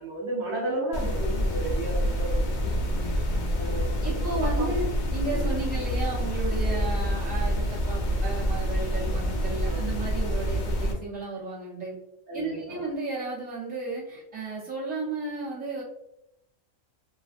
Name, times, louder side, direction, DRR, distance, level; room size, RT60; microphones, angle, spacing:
voice 1, 0.0-2.7 3.5-4.7 5.3-5.6 8.9-9.9 12.3-12.8, right 2 dB, 60° right, -5 dB, 1.0 m, -34 dB
sound 1, 0.9-10.9, equal, 80° left, 0.4 m, -27 dB
voice 2, 2.6-3.7 4.0-4.9 5.1-11.9 12.3-15.8, right 2 dB, 10° right, -8 dB, 0.8 m, -34 dB
2.6 x 2.1 x 2.5 m, 0.83 s
omnidirectional pair, 1.4 m